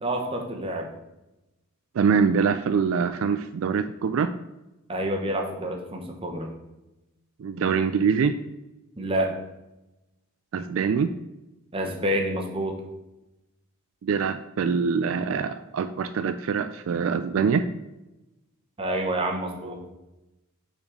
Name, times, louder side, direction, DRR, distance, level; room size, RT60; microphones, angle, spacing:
voice 1, 0.0-0.9 4.9-6.5 9.0-9.4 11.7-12.8 18.8-19.8, right 1 dB, 25° right, 2 dB, 1.0 m, -28 dB
voice 2, 1.9-4.3 7.4-8.4 10.5-11.1 14.0-17.7, right 6 dB, 65° right, 10 dB, 0.3 m, -24 dB
5.9 x 4.2 x 6.2 m, 0.99 s
head